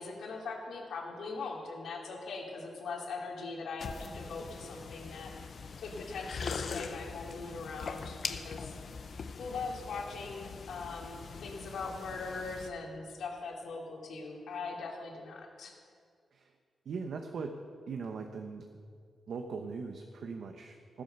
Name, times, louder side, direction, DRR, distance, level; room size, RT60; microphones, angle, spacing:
voice 1, 0.0-5.3 5.8-8.8 9.4-15.7, left 4 dB, 80° left, -1 dB, 2.8 m, -41 dB
sound 1, 3.8-12.7, left 5 dB, 50° left, 0.8 m, -42 dB
voice 2, 16.8-17.6 17.9-18.6 19.3-21.0, right 5 dB, 65° right, 4 dB, 1.0 m, -40 dB
16.0 x 10.0 x 6.7 m, 2.2 s
wide cardioid pair, 140°, 0 cm